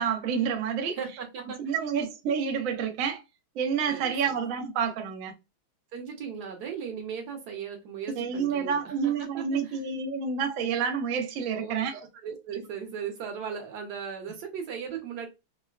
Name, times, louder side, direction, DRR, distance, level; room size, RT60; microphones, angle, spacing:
voice 1, 0.0-1.0 1.6-3.2 3.6-5.3 8.2-12.0, right 6 dB, 80° right, 0.7 m, -28 dB
voice 2, 1.0-1.7 3.9-4.4 5.9-9.8 11.5-15.3, right 7 dB, 65° right, 1.2 m, -38 dB
3.8 x 2.1 x 2.3 m
omnidirectional pair, 2.2 m